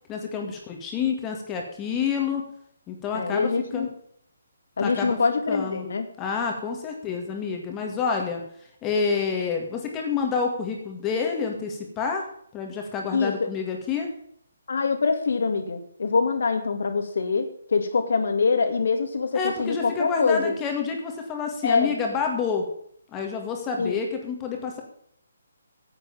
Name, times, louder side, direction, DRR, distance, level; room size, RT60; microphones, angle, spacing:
voice 1, 0.1-2.5 2.9-3.9 4.8-5.2 5.5-5.9 6.2-8.4 8.8-12.2 12.5-14.1 19.3-22.7 23.1-24.8, left 5 dB, 20° left, 2 dB, 2.1 m, -28 dB
voice 2, 3.1-3.9 4.8-6.1 13.1-13.5 14.7-20.5 21.6-21.9 23.8-24.0, left 4 dB, 65° left, 7 dB, 2.2 m, -24 dB
10.0 x 8.3 x 7.2 m, 0.66 s
figure-of-eight pair, 150°, 0 cm